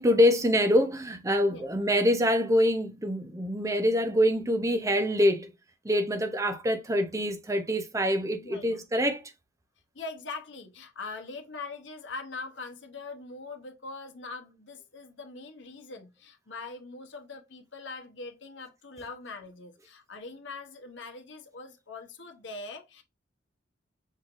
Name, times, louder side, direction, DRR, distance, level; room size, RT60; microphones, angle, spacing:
voice 1, 0.0-5.5 5.8-9.2, equal, 15° right, 0.6 m, -25 dB
voice 2, 1.4-1.8 8.4-8.8 9.9-23.0, left 3 dB, 70° left, 0.9 m, -42 dB
5.5 x 3.2 x 2.5 m
head